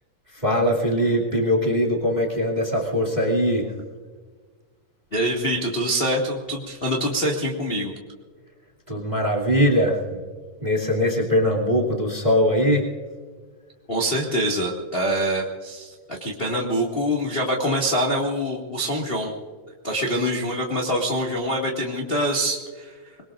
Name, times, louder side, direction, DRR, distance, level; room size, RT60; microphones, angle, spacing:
voice 1, 0.3-3.7 8.9-10.2 10.6-12.9, equal, 15° right, -1 dB, 2.2 m, -21 dB
voice 2, 5.1-7.9 13.9-19.4 19.8-23.0, equal, 25° left, -2 dB, 1.5 m, -25 dB
25.5 x 22.5 x 2.6 m, 1.5 s
omnidirectional pair, 3.9 m